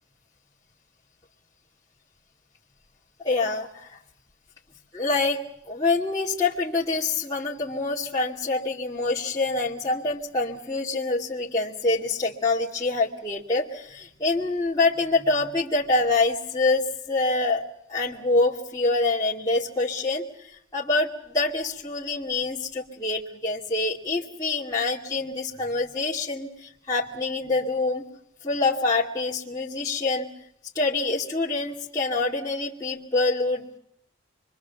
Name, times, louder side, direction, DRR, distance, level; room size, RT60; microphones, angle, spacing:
voice 1, 3.2-3.9 4.9-5.4 5.7-17.6 17.9-20.3 20.7-28.0 28.4-30.3 30.7-33.8, left 3 dB, 20° left, -7 dB, 2.4 m, -26 dB
26.0 x 23.5 x 7.1 m, 0.74 s
head